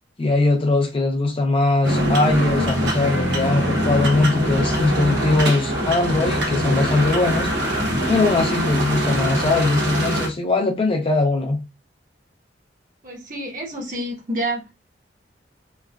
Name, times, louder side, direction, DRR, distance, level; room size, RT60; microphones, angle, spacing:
voice 1, 0.2-7.5 8.1-11.6, left 2 dB, 30° left, 0.5 m, -20 dB
sound 1, 1.8-10.3, equal, 75° right, 0.8 m, -23 dB
voice 2, 13.0-14.7, right 1 dB, 50° right, 1.1 m, -28 dB
3.1 x 2.3 x 2.3 m
head